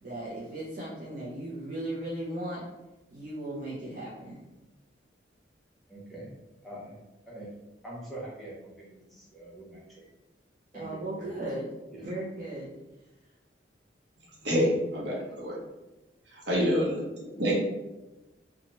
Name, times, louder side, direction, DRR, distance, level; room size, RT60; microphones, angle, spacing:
voice 1, 0.0-2.6 3.1-4.4 10.7-11.7 12.0-12.7 17.4-17.6, right 1 dB, 45° right, -7 dB, 0.6 m, -37 dB
voice 2, 5.9-6.3 6.6-6.9 7.3-7.5 7.8-10.1 10.7-11.4 11.9-12.0, right 1 dB, ahead, -7 dB, 0.7 m, -44 dB
voice 3, 14.4-15.6 16.3-17.0 17.4-17.6, equal, 65° right, -5 dB, 0.9 m, -27 dB
2.7 x 2.3 x 2.9 m, 1.0 s
head